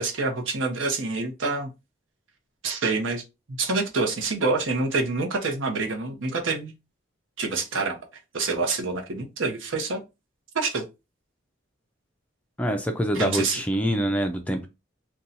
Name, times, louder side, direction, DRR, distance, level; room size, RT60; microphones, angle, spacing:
voice 1, 0.0-1.7 2.6-3.2 3.6-6.7 7.4-8.0 8.3-10.0 10.5-10.8 13.1-13.6, right 3 dB, 80° right, 0.8 m, -27 dB
voice 2, 12.6-14.7, equal, 5° left, 0.3 m, -25 dB
2.7 x 2.3 x 3.9 m
head